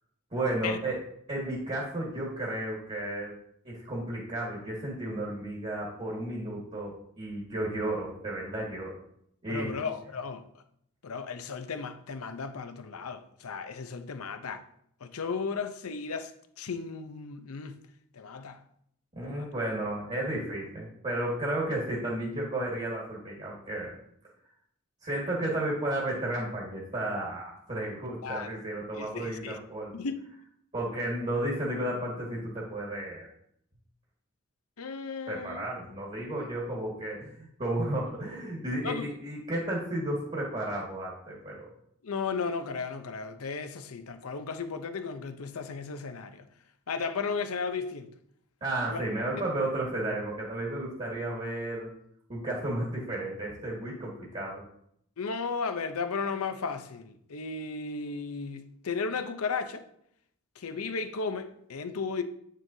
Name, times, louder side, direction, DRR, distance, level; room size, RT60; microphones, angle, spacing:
voice 1, 0.3-1.0 1.3-3.3 3.6-9.0 9.4-9.9 19.1-23.9 25.0-29.9 30.7-33.3 35.3-41.7 48.6-51.9 52.3-54.6, right 1 dB, 30° right, 1.7 m, -33 dB
voice 2, 9.5-10.4 11.0-14.6 15.0-16.3 16.6-17.8 18.1-18.6 19.2-19.5 28.2-28.6 28.9-29.6 29.9-30.2 34.8-35.6 36.3-36.5 38.8-39.1 42.0-46.4 46.9-48.1 48.9-49.0 55.2-59.9 60.6-62.2, left 5 dB, 85° left, 0.6 m, -35 dB
8.9 x 6.3 x 2.7 m
head